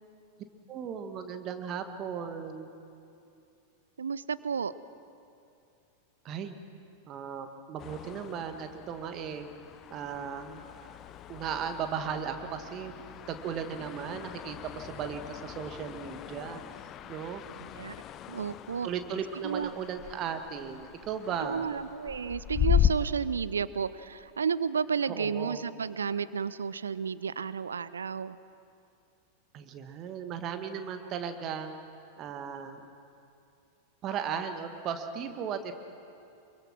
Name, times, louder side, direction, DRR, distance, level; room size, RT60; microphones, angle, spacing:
voice 1, 0.7-2.7 6.2-6.6 7.1-9.5 9.9-10.7 11.3-12.9 13.3-16.6 17.1-17.4 18.8-21.7 25.1-25.6 29.5-31.7 32.2-32.9 34.0-35.7, right 7 dB, 35° right, 7 dB, 1.7 m, -36 dB
voice 2, 4.0-4.7 17.6-18.0 18.3-18.9 19.4-19.7 21.4-28.4, right 6 dB, 70° right, 17 dB, 0.6 m, -32 dB
sound 1, 7.8-22.9, left 10 dB, 30° left, 0.7 m, -36 dB
26.0 x 23.0 x 6.2 m, 2.6 s
figure-of-eight pair, 90°, 0 cm